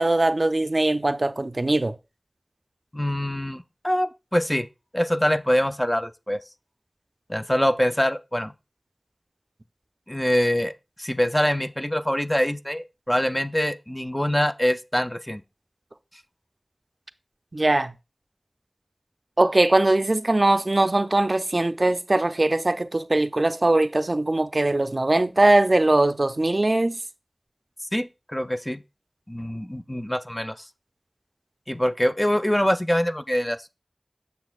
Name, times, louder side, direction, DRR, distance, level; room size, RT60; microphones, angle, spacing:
voice 1, 0.0-1.9 17.5-17.9 19.4-27.0, right 2 dB, 70° right, 0.4 m, -21 dB
voice 2, 2.9-4.7 4.9-6.4 7.3-8.5 10.1-10.7 11.0-15.4 27.9-28.8 29.3-30.6 31.7-33.7, equal, 20° left, 0.5 m, -24 dB
8.1 x 6.8 x 2.4 m
wide cardioid pair, 45°, 0 cm